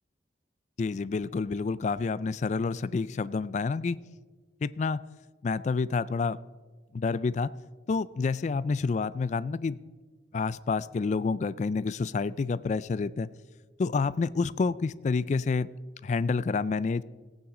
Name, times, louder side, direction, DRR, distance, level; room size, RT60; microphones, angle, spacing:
voice 1, 0.8-4.0 4.6-5.0 5.4-6.4 6.9-7.5 7.9-9.8 10.3-13.3 13.8-15.7 16.0-17.0, left 4 dB, 40° left, 17 dB, 0.3 m, -28 dB
17.5 x 9.0 x 3.8 m, 1.3 s
head